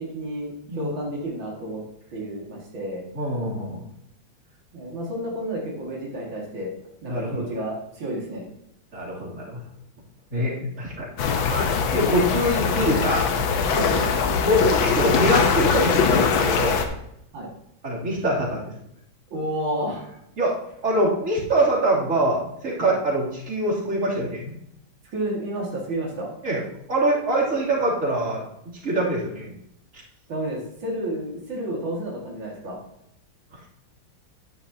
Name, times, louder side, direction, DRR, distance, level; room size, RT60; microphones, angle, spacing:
voice 1, 0.0-1.8 2.1-3.0 4.7-6.7 7.0-8.5 13.6-14.1 17.3-17.5 19.3-20.1 22.8-23.0 25.1-26.3 30.3-32.8, right 1 dB, 85° right, -3 dB, 2.9 m, -31 dB
voice 2, 3.1-3.8 7.1-7.4 8.9-9.6 10.3-13.3 14.4-16.9 17.8-18.6 20.4-20.6 20.8-24.6 26.4-26.6 26.9-28.4 28.8-29.5, right 1 dB, 40° right, -6 dB, 3.3 m, -24 dB
sound 1, 11.2-16.8, left 6 dB, 90° left, 1.7 m, -22 dB
10.5 x 10.0 x 2.8 m, 0.77 s
omnidirectional pair, 2.1 m